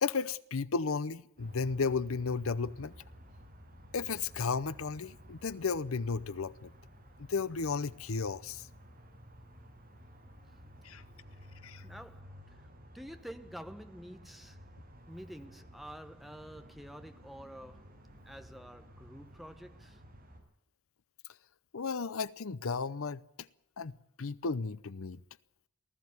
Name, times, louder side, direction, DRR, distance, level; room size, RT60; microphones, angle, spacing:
voice 1, 0.0-2.9 3.9-6.7 7.2-8.7 10.8-11.0 11.6-11.8 21.7-23.2 23.8-23.9 24.2-25.2, left 4 dB, 70° left, 0.7 m, -34 dB
sound 1, 1.4-20.4, equal, 40° right, 7.0 m, -54 dB
voice 2, 11.8-12.7 12.9-14.6 15.1-18.0 18.2-20.0, equal, ahead, 1.1 m, -48 dB
19.5 x 14.5 x 9.6 m
head